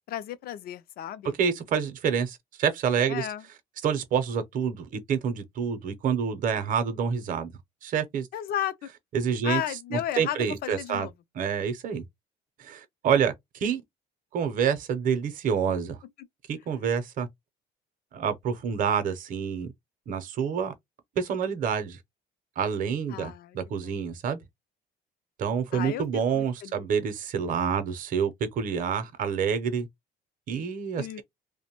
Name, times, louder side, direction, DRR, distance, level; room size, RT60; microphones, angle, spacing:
voice 1, 0.1-1.3 3.1-3.4 8.3-8.9 9.4-11.1 16.2-16.3 23.1-23.6 23.8-24.1 25.7-26.9 31.0-31.2, left 11 dB, 65° left, 0.5 m, -34 dB
voice 2, 1.4-3.3 3.8-7.5 7.8-8.3 9.1-9.6 9.9-11.1 11.4-12.0 12.6-13.8 14.3-16.0 16.5-17.3 18.1-19.7 20.1-20.7 21.2-22.0 22.6-24.4 25.4-29.9 30.5-31.2, right 7 dB, 55° right, 0.6 m, -27 dB
2.5 x 2.1 x 2.9 m
cardioid pair, 110°, 17 cm